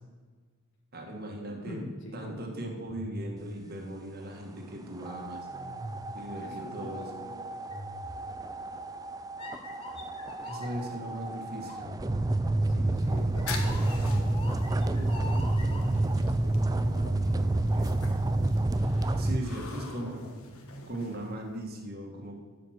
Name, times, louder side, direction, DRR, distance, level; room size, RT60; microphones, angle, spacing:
voice 1, 0.9-1.8 2.1-5.5 6.1-7.1 10.4-11.8 19.2-20.2 20.9-22.4, right 1 dB, 45° right, 2 dB, 1.6 m, -38 dB
voice 2, 1.7-2.4 6.4-7.6 11.0-11.2 12.6-14.4 14.7-19.1 19.7-20.4, left 1 dB, 55° left, 1 dB, 1.7 m, -45 dB
sound 1, 2.9-4.7 5.5-6.4 7.7-8.7 9.4-11.0 11.7-16.2 17.5-19.3 20.5-20.8, left 1 dB, 25° left, 1.1 m, -44 dB
sound 2, 5.0-19.4, right 2 dB, 15° right, 0.3 m, -29 dB
sound 3, 13.0-21.7, left 4 dB, 75° left, 1.3 m, -46 dB
12.0 x 5.1 x 6.4 m, 1.5 s
head